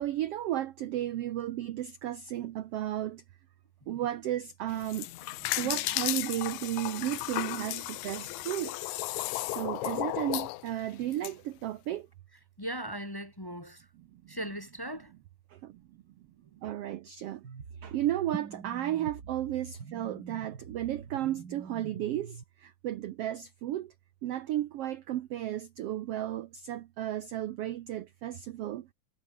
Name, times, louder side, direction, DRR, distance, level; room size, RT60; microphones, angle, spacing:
voice 1, 0.0-3.2 3.9-5.1 5.4-8.8 9.4-12.1 14.0-14.3 15.5-15.8 16.5-17.4 17.8-23.9 24.2-28.9, right 13 dB, 80° right, 1.3 m, -34 dB
sound 1, 4.7-11.3, left 18 dB, 80° left, 1.9 m, -34 dB
voice 2, 12.6-13.8 14.3-15.1, equal, 10° left, 1.4 m, -38 dB
sound 2, 17.4-22.4, right 5 dB, 35° right, 2.3 m, -44 dB
omnidirectional pair, 3.7 m